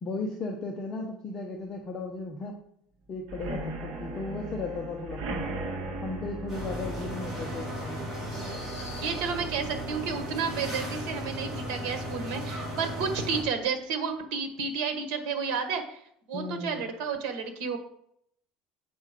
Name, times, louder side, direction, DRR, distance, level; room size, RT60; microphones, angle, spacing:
voice 1, 0.0-2.6 3.1-5.2 6.0-8.1 16.3-16.8, left 3 dB, 25° left, 1 dB, 0.7 m, -36 dB
sound 1, 3.2-10.9 11.3-11.7 11.9-12.0 12.4-12.5, right 2 dB, 45° right, 2.0 m, -39 dB
sound 2, 6.5-13.4, right 1 dB, 10° right, 3.8 m, -36 dB
voice 2, 8.8-16.0 16.3-17.8, right 5 dB, 75° right, 6 dB, 1.5 m, -31 dB
8.3 x 5.2 x 5.0 m, 0.71 s
cardioid pair, 175°, 2 cm